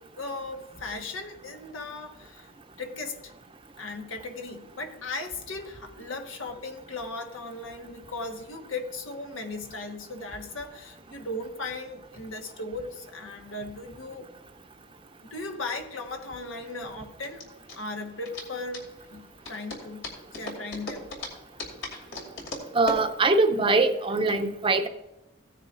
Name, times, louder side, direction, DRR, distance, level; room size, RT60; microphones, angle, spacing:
voice 1, 0.2-2.5 2.8-3.3 3.8-14.3 15.3-17.5 17.7-20.1 20.4-21.1, left 2 dB, 90° left, 4 dB, 1.4 m, -37 dB
sound 1, 15.4-24.3, left 2 dB, 70° left, 2.9 m, -39 dB
voice 2, 22.7-24.9, right 3 dB, 25° right, 8 dB, 0.6 m, -22 dB
16.5 x 9.8 x 2.6 m, 0.97 s
head